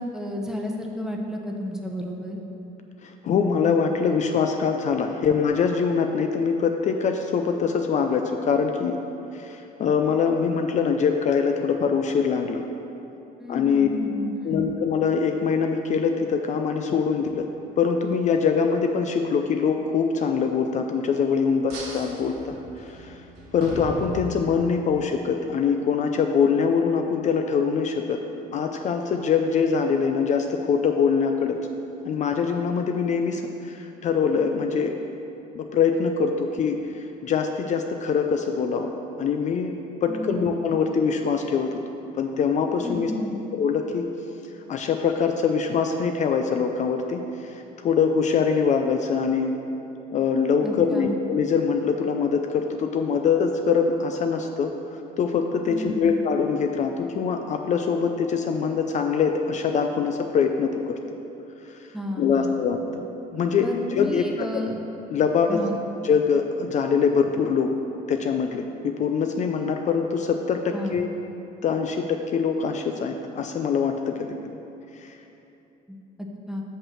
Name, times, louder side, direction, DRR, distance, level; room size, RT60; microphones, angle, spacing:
voice 1, 0.0-2.4 13.4-14.7 40.1-40.5 42.8-43.4 50.6-51.1 55.6-56.1 61.9-62.6 63.6-64.7 65.5-65.8 70.7-71.0 75.9-76.0 76.5-76.6, left 1 dB, 5° right, 0 dB, 0.8 m, -31 dB
voice 2, 3.0-9.0 9.3-12.6 13.5-13.9 14.4-17.5 17.8-23.2 23.5-28.2 28.5-31.6 32.0-35.0 35.6-38.9 39.2-41.7 42.1-43.1 43.5-44.1 44.7-49.5 50.1-54.7 55.2-61.0 61.7-61.8 62.2-63.0 63.3-63.7 63.9-64.5 65.1-65.6 66.0-67.7 68.1-71.1 71.6-74.4 74.9-75.2, left 6 dB, 45° left, 5 dB, 0.4 m, -23 dB
sound 1, 21.7-24.9, right 1 dB, 80° right, 1.7 m, -38 dB
5.7 x 5.4 x 6.3 m, 2.9 s
cardioid pair, 110°, 17 cm